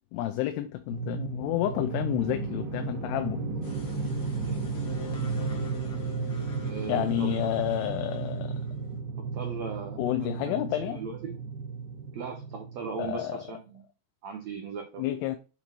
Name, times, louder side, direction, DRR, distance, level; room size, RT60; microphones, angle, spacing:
voice 1, 0.1-3.5 6.9-8.6 10.0-11.0 13.0-13.4 15.0-15.4, left 13 dB, 85° left, 2.7 m, -30 dB
sound 1, 0.9-13.1, right 4 dB, 60° right, 2.6 m, -34 dB
sound 2, 3.6-9.0, left 3 dB, 50° left, 1.4 m, -43 dB
voice 2, 6.6-7.4 9.3-11.3 12.1-13.8 14.2-15.0, right 5 dB, 90° right, 1.5 m, -38 dB
7.6 x 4.1 x 4.3 m
omnidirectional pair, 4.7 m